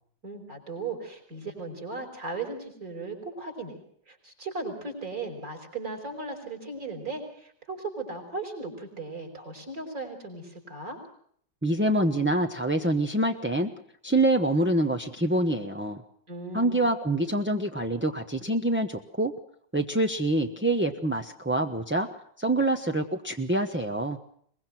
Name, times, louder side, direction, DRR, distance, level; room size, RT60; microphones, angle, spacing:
voice 1, 0.2-3.8 4.1-11.0 16.3-16.8, right 3 dB, 50° right, 4 dB, 5.8 m, -37 dB
voice 2, 11.6-13.7 14.0-16.0 16.5-19.3 19.7-22.1 22.4-24.2, right 1 dB, 10° right, 3 dB, 0.7 m, -26 dB
23.0 x 21.5 x 6.0 m, 0.64 s
omnidirectional pair, 2.0 m